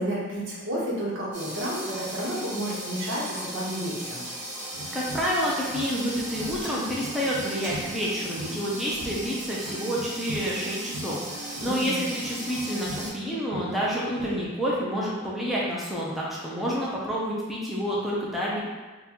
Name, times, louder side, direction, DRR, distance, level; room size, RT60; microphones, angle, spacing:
voice 1, 0.0-4.2 11.6-12.0, equal, 80° right, -5 dB, 0.9 m, -31 dB
sound 1, 1.3-13.1, right 1 dB, 40° right, 1.3 m, -37 dB
sound 2, 4.7-14.4, right 3 dB, 65° right, 0.3 m, -41 dB
voice 2, 4.9-18.6, equal, ahead, -6 dB, 0.5 m, -29 dB
3.9 x 2.2 x 2.9 m, 1.3 s
head